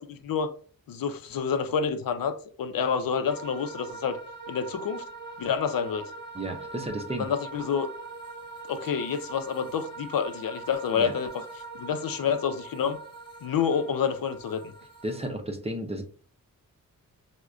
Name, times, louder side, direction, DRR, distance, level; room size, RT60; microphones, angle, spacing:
voice 1, 0.1-0.5 0.9-4.2 4.5-5.0 5.4-6.1 7.2-7.9 8.7-11.3 11.8-13.0 13.4-14.6, left 6 dB, 80° left, 0.5 m, -28 dB
sound 1, 3.3-15.3, right 3 dB, 15° left, 0.9 m, -42 dB
voice 2, 6.3-7.3 11.0-11.1 15.0-16.0, right 1 dB, 20° right, 0.6 m, -33 dB
4.7 x 2.1 x 2.4 m
wide cardioid pair, 90°, 34 cm